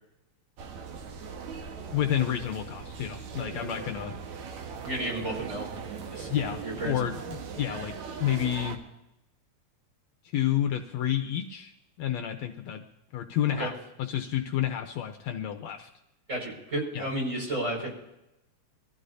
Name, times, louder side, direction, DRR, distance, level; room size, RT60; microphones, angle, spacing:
sound 1, 0.6-8.8, right 6 dB, 75° right, 2.6 m, -39 dB
voice 1, 1.9-4.2 6.2-8.8 10.3-11.7 12.0-12.8 13.1-13.7 14.0-15.9 16.9-17.1, left 11 dB, 70° left, 5 dB, 2.0 m, -30 dB
voice 2, 4.8-5.7 6.1-6.3 6.6-7.1 13.5-13.7 16.3-17.9, right 1 dB, 25° right, -1 dB, 5.6 m, -32 dB
24.0 x 15.0 x 2.7 m, 0.89 s
omnidirectional pair, 3.4 m